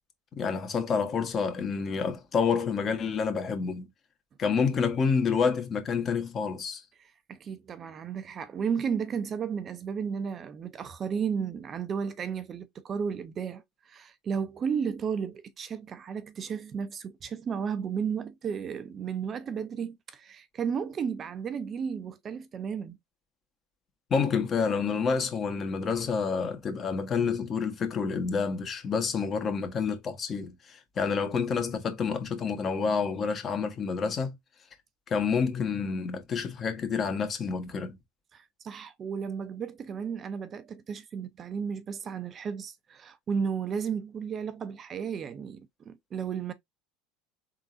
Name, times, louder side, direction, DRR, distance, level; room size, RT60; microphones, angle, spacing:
voice 1, 0.4-3.9 4.4-6.8 24.1-34.3 35.1-38.0, left 5 dB, 40° left, 1.4 m, -28 dB
voice 2, 7.0-23.0 38.3-46.5, right 6 dB, 40° right, 0.6 m, -33 dB
3.8 x 3.7 x 2.5 m
hypercardioid pair, 85°, 0 cm